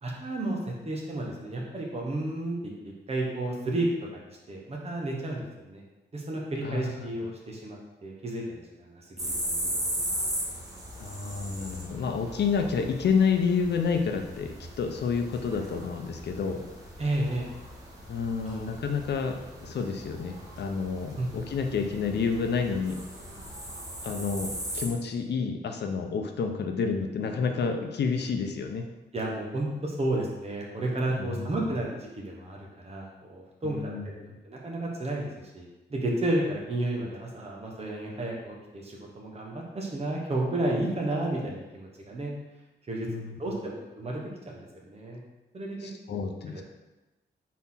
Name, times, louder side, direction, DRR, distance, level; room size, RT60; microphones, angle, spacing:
voice 1, 0.0-3.9 4.1-5.8 6.1-10.0 17.0-17.5 18.4-18.7 21.2-21.3 29.1-35.3 35.5-42.3 42.9-43.1 43.4-45.2 45.5-45.8 46.1-46.2 46.5-46.6, right 1 dB, 35° right, -2 dB, 1.2 m, -32 dB
sound 1, 9.2-24.9, equal, 20° right, 1.2 m, -38 dB
voice 2, 11.0-16.6 18.1-23.0 24.0-28.8 31.1-31.5 33.6-34.4 43.1-43.4 45.8-46.6, left 5 dB, 70° left, 4 dB, 0.6 m, -29 dB
4.2 x 4.2 x 5.6 m, 1.0 s
wide cardioid pair, 180°, 18 cm